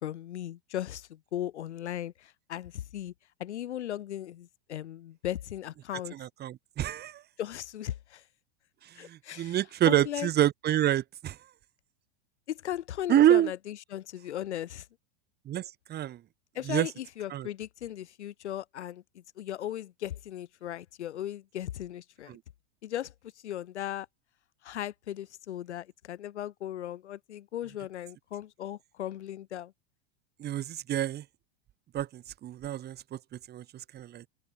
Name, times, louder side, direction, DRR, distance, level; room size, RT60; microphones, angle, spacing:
voice 1, 0.0-3.1 3.4-6.1 7.4-8.2 9.0-9.6 9.9-10.3 12.5-14.9 16.6-22.4 22.8-23.1 23.4-24.1 24.6-29.7, left 12 dB, 85° left, 2.2 m, -37 dB
voice 2, 6.1-7.2 8.8-11.4 13.1-13.5 15.4-16.2 16.6-16.9 17.3-17.5 22.3-22.4 30.4-31.2 31.9-33.2 33.5-33.6 33.9-34.2, right 12 dB, 30° right, 1.5 m, -27 dB
open air
hypercardioid pair, 120°, 33 cm